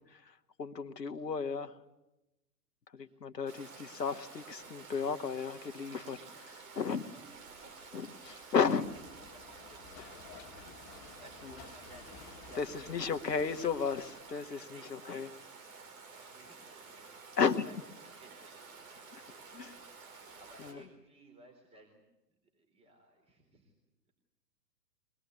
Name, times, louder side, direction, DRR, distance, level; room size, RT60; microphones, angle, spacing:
voice 1, 0.2-1.8 2.9-6.2 6.7-7.0 7.9-8.8 12.6-15.3 17.4-17.7 19.5-19.7 20.6-20.8, left 6 dB, 75° left, 9 dB, 1.7 m, -34 dB
Stream, 3.5-20.7, right 4 dB, 50° right, 5.4 m, -51 dB
voice 2, 5.9-6.8 7.6-8.8 9.1-13.5 14.6-17.8 18.0-19.2 19.9-22.0 22.4-23.7, right 1 dB, 10° right, 1 dB, 4.0 m, -59 dB
sound 1, 8.5-13.8, left 5 dB, 40° left, 2.0 m, -54 dB
23.5 x 20.5 x 9.5 m, 0.94 s
figure-of-eight pair, 115°, 50 cm